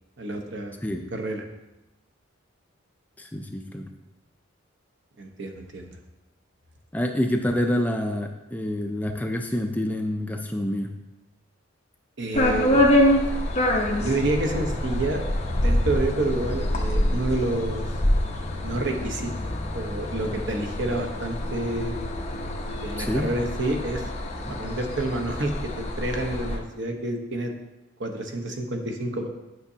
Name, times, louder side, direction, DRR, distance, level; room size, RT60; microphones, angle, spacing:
voice 1, 0.2-0.8 1.1-1.4 5.2-6.0 12.2-13.0 14.0-15.2 15.6-17.8 18.6-19.3 19.7-22.0 22.8-24.0 24.5-27.5 28.0-29.3, right 2 dB, 60° right, 3 dB, 0.9 m, -28 dB
voice 2, 3.2-3.9 6.9-10.9 23.0-23.3, left 1 dB, 10° left, 4 dB, 0.4 m, -27 dB
Sound Walk - Birds, 12.3-26.6, left 1 dB, 35° left, 0.8 m, -26 dB
9.6 x 5.9 x 2.8 m, 1.0 s
head